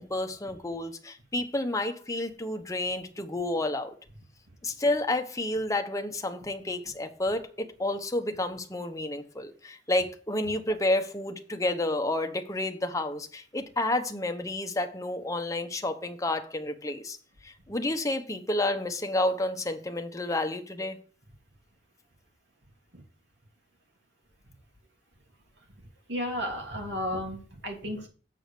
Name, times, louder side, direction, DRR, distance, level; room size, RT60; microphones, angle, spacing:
voice 1, 0.0-3.9 4.6-17.2 17.4-21.0, left 1 dB, 20° left, 0.9 m, -30 dB
voice 2, 26.1-28.1, equal, 70° right, 3.1 m, -33 dB
7.7 x 4.9 x 6.7 m
head